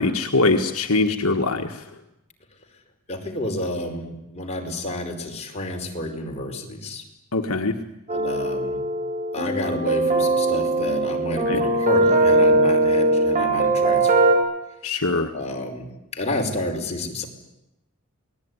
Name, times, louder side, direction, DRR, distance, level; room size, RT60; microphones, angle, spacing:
voice 1, 0.0-1.8 7.3-7.8 11.5-11.6 14.8-15.3, left 3 dB, 70° left, 5 dB, 1.7 m, -22 dB
voice 2, 3.1-7.0 8.1-8.8 9.3-14.3 15.3-15.9 16.1-17.3, left 1 dB, 30° left, 2 dB, 5.0 m, -30 dB
sound 1, 8.1-14.4, right 2 dB, 35° right, 5.6 m, -20 dB
28.0 x 20.0 x 9.9 m, 0.88 s
head